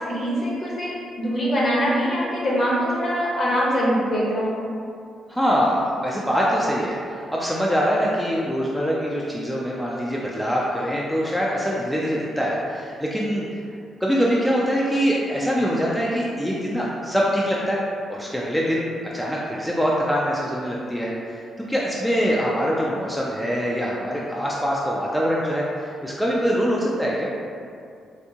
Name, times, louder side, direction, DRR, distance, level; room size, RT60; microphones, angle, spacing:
voice 1, 0.1-4.6, equal, 40° left, -6 dB, 0.9 m, -23 dB
voice 2, 5.3-13.6 14.0-17.8 18.1-27.3, equal, ahead, -5 dB, 0.3 m, -24 dB
3.4 x 2.7 x 2.8 m, 2.3 s
cardioid pair, 120°, 0 cm